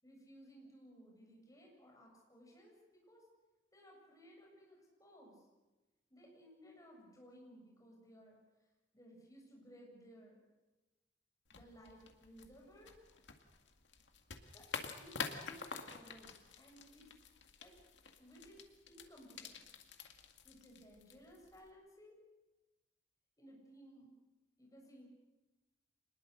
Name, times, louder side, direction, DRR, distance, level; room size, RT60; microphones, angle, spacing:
voice 1, 0.0-3.2 3.7-5.4 6.1-8.4 8.9-10.4 11.5-13.0 14.5-17.1 17.6-17.7 18.2-19.6 20.4-22.2 23.4-24.1 24.6-25.1, equal, 20° left, -1 dB, 7.3 m, -59 dB
sound 1, 11.5-21.7, left 5 dB, 85° left, 2.0 m, -49 dB
26.0 x 21.0 x 6.7 m, 1.1 s
head